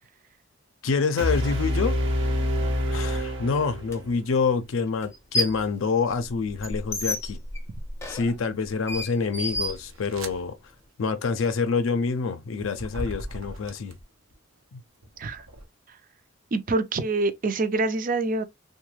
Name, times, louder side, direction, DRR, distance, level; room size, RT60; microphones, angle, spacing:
voice 1, 0.8-2.0 2.9-7.4 8.1-10.6 11.0-14.0 14.7-14.8, left 5 dB, 80° left, 0.5 m, -26 dB
sound 1, 1.2-4.2, left 1 dB, 60° right, 0.9 m, -26 dB
sound 2, 3.9-4.0 5.0-5.7 6.1-10.4, left 1 dB, 15° left, 0.5 m, -31 dB
sound 3, 5.6-5.9 6.5-7.3 8.0-14.4 14.9-15.7, right 1 dB, 85° right, 0.7 m, -41 dB
voice 2, 16.5-18.4, right 2 dB, 40° right, 0.4 m, -25 dB
3.1 x 2.2 x 3.1 m
head